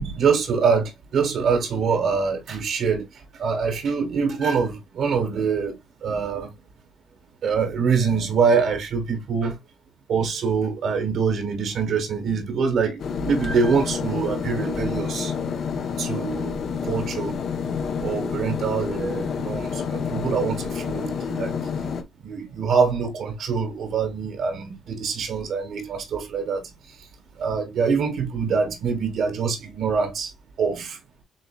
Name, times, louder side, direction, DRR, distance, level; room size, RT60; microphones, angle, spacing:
voice 1, 0.0-5.7 6.0-6.5 7.4-9.5 10.1-15.3 16.0-17.3 18.0-21.6 22.2-26.6 27.4-30.3 30.6-31.0, right 5 dB, 75° right, 1.7 m, -24 dB
sound 1, 13.0-22.0, left 6 dB, 65° left, 0.9 m, -29 dB
7.5 x 2.8 x 2.3 m
cardioid pair, 90°, 0 cm